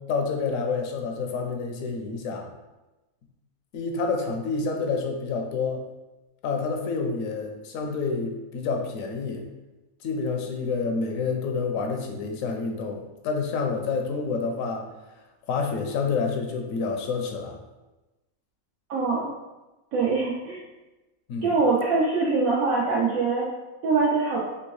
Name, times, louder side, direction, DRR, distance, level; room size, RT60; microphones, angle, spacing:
voice 1, 0.1-2.5 3.7-5.8 6.4-9.5 10.0-14.8 15.5-17.6 21.3-21.5, left 4 dB, 75° left, 3 dB, 0.9 m, -28 dB
voice 2, 18.9-19.3 19.9-20.6 21.4-23.5 23.8-24.4, right 4 dB, 75° right, -5 dB, 1.1 m, -23 dB
3.4 x 2.7 x 3.1 m, 1.1 s
omnidirectional pair, 1.5 m